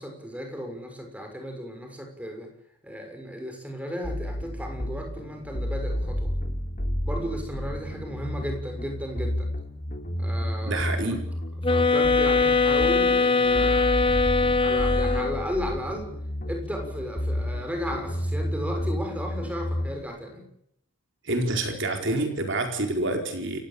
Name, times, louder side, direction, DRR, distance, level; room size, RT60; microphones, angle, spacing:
voice 1, 0.0-2.5 2.8-6.3 7.0-9.5 10.2-11.1 11.7-14.0 14.6-16.1 16.5-20.5, equal, 5° right, 4 dB, 6.5 m, -34 dB
sound 1, 4.0-20.0, equal, 40° left, 3.2 m, -31 dB
voice 2, 10.7-11.2 21.2-23.6, right 2 dB, 55° right, 4 dB, 4.7 m, -27 dB
sound 2, 11.6-15.5, left 4 dB, 25° left, 1.5 m, -22 dB
29.0 x 17.0 x 8.7 m, 0.74 s
head